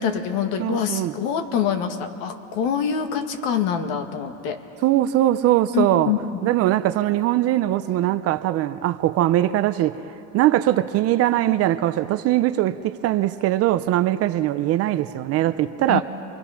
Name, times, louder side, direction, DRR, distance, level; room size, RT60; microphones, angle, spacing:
voice 1, 0.0-4.6 5.7-6.4 15.9-16.0, left 7 dB, 60° left, 1.9 m, -25 dB
voice 2, 0.6-1.1 4.8-6.1 6.4-10.0 10.3-16.0, right 14 dB, 35° right, 0.5 m, -21 dB
29.0 x 23.5 x 5.8 m
supercardioid pair, 145°, 41 cm